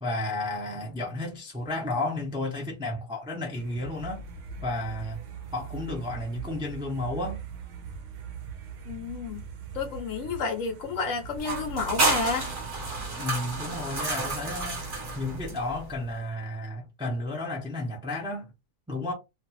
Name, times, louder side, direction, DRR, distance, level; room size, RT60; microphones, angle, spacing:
voice 1, 0.0-4.2 4.6-5.2 5.5-7.4 13.1-14.8 15.2-18.5 18.9-19.1, left 2 dB, 5° right, 0.5 m, -32 dB
sound 1, 3.5-13.1, right 6 dB, 65° right, 0.8 m, -41 dB
voice 2, 8.9-9.4 9.7-12.6, left 4 dB, 65° left, 1.0 m, -31 dB
sound 2, 11.4-16.0, right 3 dB, 40° right, 1.0 m, -30 dB
2.5 x 2.4 x 3.0 m
omnidirectional pair, 1.5 m